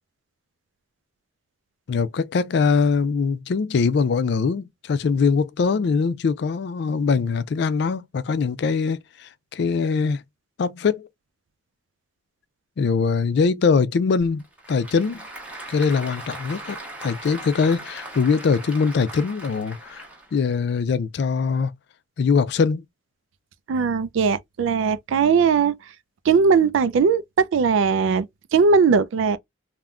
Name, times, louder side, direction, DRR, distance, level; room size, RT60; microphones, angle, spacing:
voice 1, 1.9-10.2 10.6-11.1 12.8-15.2 15.7-20.0 20.3-21.7 22.2-22.8, left 5 dB, 60° left, 0.3 m, -22 dB
Applause / Crowd, 14.2-20.4, right 2 dB, 5° right, 0.8 m, -39 dB
voice 2, 23.7-25.7 26.3-29.4, right 5 dB, 90° right, 0.4 m, -19 dB
3.5 x 2.2 x 2.3 m
head